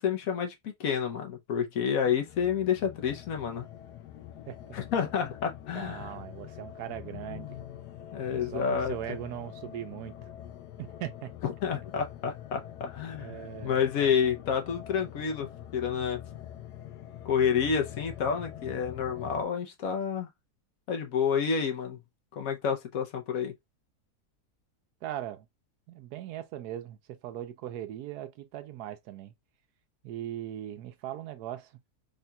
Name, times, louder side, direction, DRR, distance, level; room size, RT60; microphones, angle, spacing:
voice 1, 0.0-3.7 4.7-6.1 7.1-7.6 8.1-8.9 11.4-13.3 13.6-16.2 17.2-20.3 20.9-22.0 22.4-23.5, left 7 dB, 65° left, 1.1 m, -29 dB
sound 1, 2.0-19.4, left 11 dB, 85° left, 1.2 m, -45 dB
voice 2, 5.7-7.6 8.3-10.2 10.8-11.3 13.2-13.8 25.0-25.5 25.9-29.3 30.0-31.7, right 12 dB, 80° right, 1.1 m, -39 dB
4.1 x 3.7 x 2.2 m
omnidirectional pair, 1.7 m